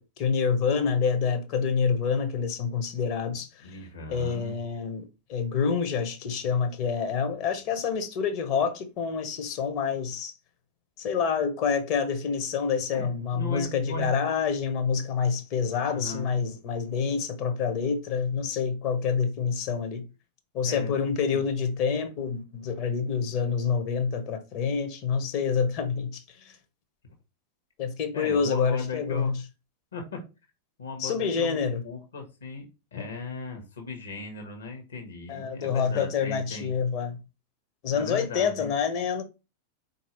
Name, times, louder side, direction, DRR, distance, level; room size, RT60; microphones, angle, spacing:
voice 1, 0.0-3.8 4.1-10.3 11.0-20.0 20.5-26.5 27.8-29.3 31.0-31.8 33.0-33.1 35.3-37.2 37.8-39.2, left 6 dB, 40° left, 0.7 m, -27 dB
voice 2, 3.3-4.6 12.9-14.2 15.7-16.5 20.6-21.5 27.0-27.1 28.1-29.3 29.9-30.2 30.8-31.6 31.8-32.7 32.9-36.7 37.9-38.7, left 3 dB, 65° left, 1.1 m, -38 dB
4.2 x 2.7 x 2.9 m
figure-of-eight pair, 90°, 0 cm